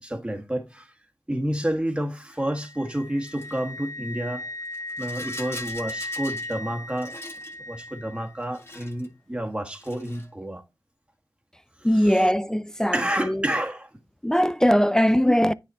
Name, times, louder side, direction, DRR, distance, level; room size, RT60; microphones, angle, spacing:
voice 1, 0.0-0.9 1.3-4.4 5.0-7.2 7.7-10.6 11.8-12.2 12.9-13.9, right 1 dB, 15° right, 1.5 m, -29 dB
Wind instrument woodwind instrument, 2.4-8.4, left 1 dB, 50° left, 0.9 m, -37 dB
Rattle, 3.2-3.6 4.6-6.6 6.9-7.6 8.4-9.1 9.7-10.3, left 2 dB, 35° left, 1.8 m, -43 dB
voice 2, 11.8-13.5 14.2-15.5, equal, 10° left, 0.4 m, -21 dB
9.6 x 4.1 x 4.2 m
wide cardioid pair, 85°, 8 cm